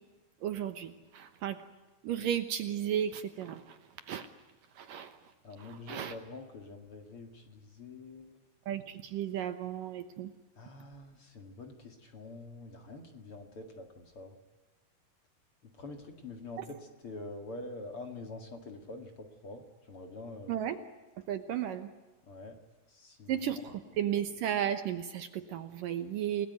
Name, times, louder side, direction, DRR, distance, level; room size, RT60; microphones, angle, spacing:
voice 1, 0.4-1.6 2.0-3.8 4.1-4.3 4.8-5.1 5.6-6.1 8.7-10.3 16.6-16.7 20.5-20.8 21.3-21.9 23.3-26.5, right 10 dB, 70° right, 9 dB, 2.3 m, -34 dB
voice 2, 5.4-8.4 10.6-14.3 15.8-20.7 22.3-22.6 22.9-23.6, left 2 dB, 40° left, 5 dB, 2.3 m, -46 dB
29.5 x 19.5 x 9.4 m, 1.2 s
omnidirectional pair, 4.8 m